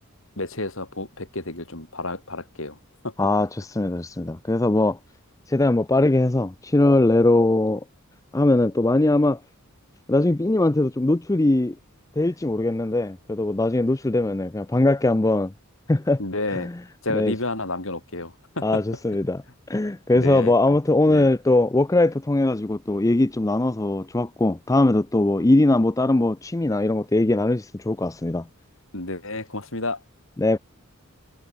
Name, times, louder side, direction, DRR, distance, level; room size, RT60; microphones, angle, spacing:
voice 1, 0.4-2.8 3.0-3.1 16.2-16.7 17.0-18.8 20.1-20.8 21.1-21.3 28.9-30.0, left 2 dB, 65° left, 4.8 m, -30 dB
voice 2, 3.2-5.0 5.5-7.8 8.3-9.4 10.1-11.7 12.2-15.5 15.9-16.2 16.5-16.7 17.1-17.3 18.6-19.4 19.7-28.5 30.4-30.6, left 2 dB, 15° left, 0.5 m, -21 dB
head